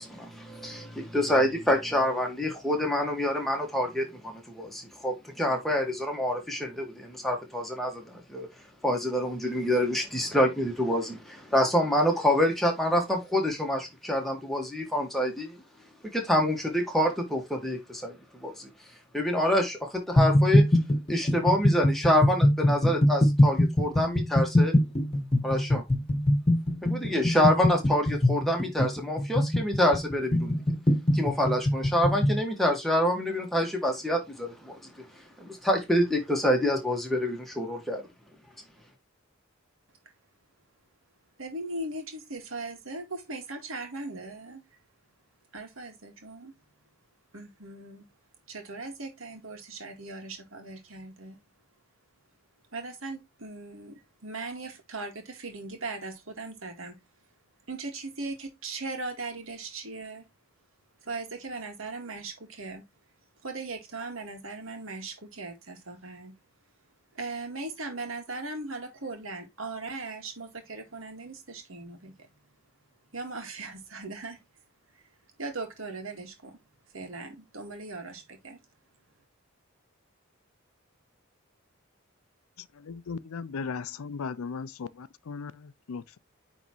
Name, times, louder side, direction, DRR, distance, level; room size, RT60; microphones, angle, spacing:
voice 1, 0.0-8.5 8.8-15.6 16.1-18.7 19.1-20.6 21.1-24.8 25.4-25.8 26.8-30.6 31.1-34.9 35.4-38.0, equal, ahead, 1.7 m, -27 dB
sound 1, 20.2-32.4, left 1 dB, 30° left, 1.4 m, -23 dB
voice 2, 41.4-44.6 45.5-46.6 47.3-48.1 48.5-51.4 52.7-57.0 57.7-60.3 61.0-62.8 63.4-66.3 67.1-72.3 73.1-74.4 75.4-76.6 76.9-78.6, right 3 dB, 70° right, 2.0 m, -39 dB
voice 3, 82.8-86.2, left 5 dB, 80° left, 0.5 m, -37 dB
9.3 x 3.6 x 3.1 m
head